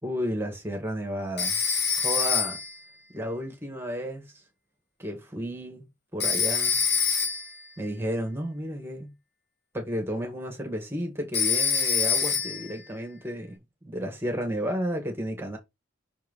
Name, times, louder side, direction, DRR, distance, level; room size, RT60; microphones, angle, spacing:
voice 1, 0.0-1.6 2.0-2.6 3.1-4.4 5.0-5.9 6.1-6.8 7.8-9.1 9.7-15.6, equal, 10° right, 1.9 m, -32 dB
Telephone, 1.4-2.8 6.2-7.6 11.3-12.8, left 6 dB, 55° left, 1.8 m, -25 dB
5.9 x 4.6 x 5.5 m
head